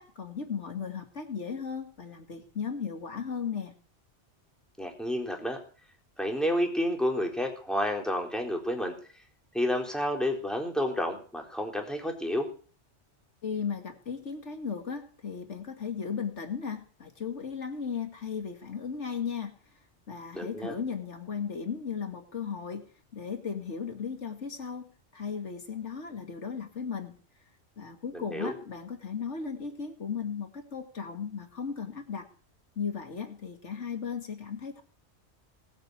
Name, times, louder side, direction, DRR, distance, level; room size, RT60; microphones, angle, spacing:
voice 1, 0.0-3.7 13.4-19.5 20.1-22.9 23.1-27.1 27.8-32.3 32.8-34.8, left 6 dB, 90° left, 6 dB, 2.4 m, -36 dB
voice 2, 4.8-5.6 6.2-8.9 9.5-12.5 20.3-20.7 28.1-28.5, equal, ahead, 1 dB, 3.9 m, -30 dB
20.0 x 8.3 x 8.1 m, 0.41 s
omnidirectional pair, 1.2 m